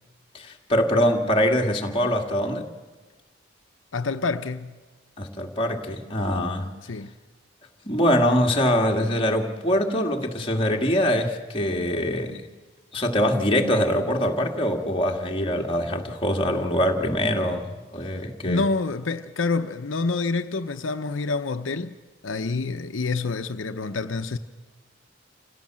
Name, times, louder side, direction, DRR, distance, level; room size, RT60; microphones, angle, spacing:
voice 1, 0.3-2.7 5.2-6.7 7.9-12.4 12.9-18.6, equal, 30° left, 2.0 m, -23 dB
voice 2, 3.9-4.8 6.8-7.1 18.4-22.0 22.2-24.4, left 3 dB, 85° left, 0.8 m, -27 dB
27.5 x 16.5 x 7.5 m
head